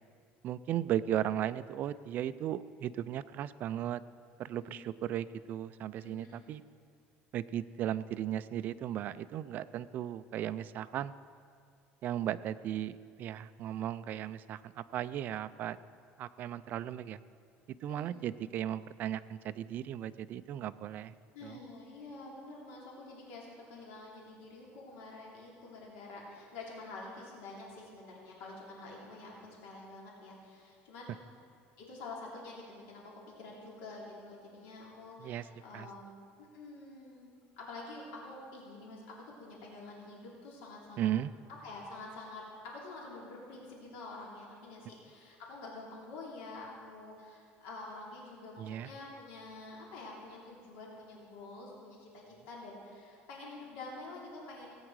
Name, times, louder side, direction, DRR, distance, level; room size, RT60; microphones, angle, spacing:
voice 1, 0.4-4.0 4.4-6.6 7.3-11.1 12.0-15.8 16.2-17.2 17.8-21.1 21.4-21.6 35.2-35.5 35.7-35.9 41.0-41.3 48.6-48.9, right 11 dB, 45° right, 14 dB, 0.4 m, -36 dB
voice 2, 4.5-4.9 6.0-6.4 17.9-18.1 21.3-31.2 31.8-41.1 41.6-54.8, left 2 dB, 85° left, -3 dB, 3.0 m, -48 dB
17.5 x 8.9 x 4.8 m, 2.3 s
cardioid pair, 150°, 4 cm